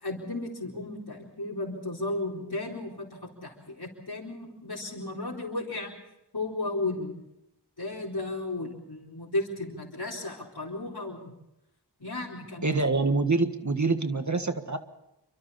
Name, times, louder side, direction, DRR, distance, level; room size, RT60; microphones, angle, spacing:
voice 1, 0.0-5.9 6.3-7.2 7.8-11.3 12.0-12.7, left 2 dB, 60° left, -5 dB, 4.2 m, -34 dB
voice 2, 12.6-14.8, right 3 dB, 45° right, 7 dB, 1.7 m, -26 dB
28.5 x 24.5 x 4.2 m, 0.88 s
wide cardioid pair, 45°, 42 cm